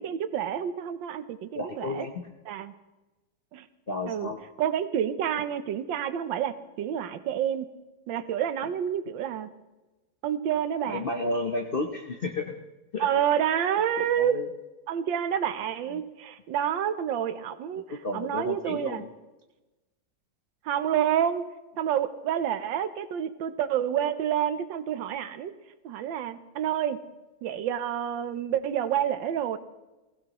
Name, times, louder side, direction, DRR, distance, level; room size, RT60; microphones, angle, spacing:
voice 1, 0.0-2.1 2.5-2.7 3.5-3.7 4.1-4.3 4.6-7.7 8.1-9.5 10.2-11.0 13.0-14.4 14.9-17.8 18.1-19.0 20.6-21.4 21.8-25.5 25.8-27.0 27.4-29.6, right 9 dB, 80° right, 11 dB, 1.5 m, -28 dB
voice 2, 1.6-2.3 3.9-4.4 10.9-12.5 12.9-13.1 14.2-14.5 15.9-16.0 17.9-19.1, left 2 dB, 45° left, 2 dB, 0.7 m, -32 dB
19.5 x 16.0 x 3.0 m, 1.1 s
omnidirectional pair, 2.1 m